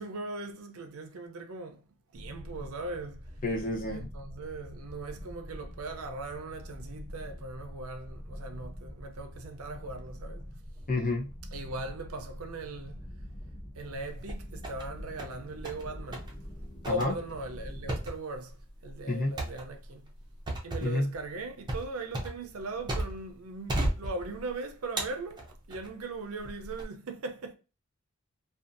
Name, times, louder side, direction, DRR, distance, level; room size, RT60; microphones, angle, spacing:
voice 1, 0.0-1.8 2.1-3.3 3.9-10.5 11.5-13.0 13.8-16.3 16.9-18.6 18.8-20.0 20.6-27.5, right 2 dB, 70° right, 0.5 m, -39 dB
sound 1, 2.1-18.0, equal, 20° left, 1.1 m, -45 dB
voice 2, 3.4-4.1 10.9-11.3 16.9-17.1 19.1-19.3 20.8-21.1, left 2 dB, 40° left, 0.6 m, -29 dB
sound 2, 13.9-14.9 15.2-15.8 16.1-16.3 16.8-23.3 23.7-24.5 25.0-25.9 26.4-26.8, right 1 dB, 20° right, 0.5 m, -35 dB
2.5 x 2.4 x 2.5 m
head